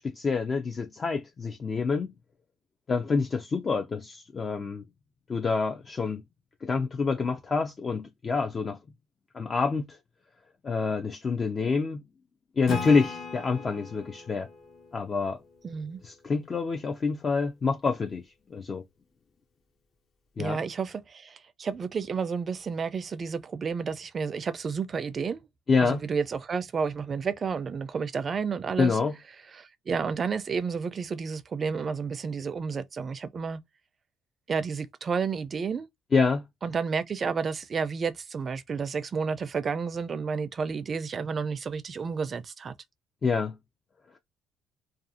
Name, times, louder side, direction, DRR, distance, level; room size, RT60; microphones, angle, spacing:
voice 1, 0.0-2.1 2.9-4.8 5.3-6.2 6.6-8.8 9.3-10.0 10.6-12.0 12.6-14.5 14.9-15.4 16.0-18.2 18.5-18.8 20.4-20.6 25.7-26.0 28.8-29.1 36.1-36.4 43.2-43.6, left 4 dB, 35° left, 0.4 m, -27 dB
Acoustic guitar / Strum, 12.7-16.1, left 4 dB, 60° left, 1.0 m, -39 dB
voice 2, 15.6-16.0 20.4-25.5 25.8-29.0 29.5-33.6 34.5-35.9 36.6-42.7, right 5 dB, 40° right, 0.4 m, -31 dB
2.5 x 2.3 x 2.6 m
cardioid pair, 95°, 0 cm